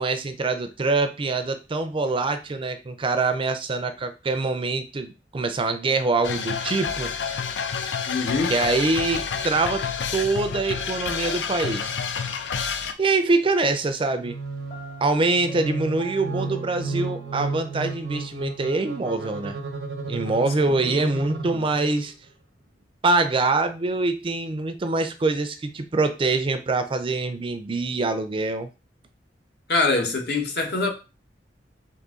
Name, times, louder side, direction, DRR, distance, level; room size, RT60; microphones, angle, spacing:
voice 1, 0.0-7.1 8.5-9.9 10.1-11.9 13.0-14.4 15.0-19.6 20.1-22.1 23.0-28.7, right 3 dB, 30° right, 0.4 m, -24 dB
sound 1, 6.2-12.9, left 6 dB, 85° left, 0.5 m, -29 dB
voice 2, 8.1-8.5 20.9-21.0 21.5-21.6 29.7-30.9, left 3 dB, 65° left, 1.0 m, -24 dB
sound 2, 14.2-22.1, right 3 dB, 75° right, 0.7 m, -34 dB
Piano, 14.7-18.6, right 2 dB, 30° left, 0.7 m, -43 dB
3.9 x 2.6 x 3.6 m
head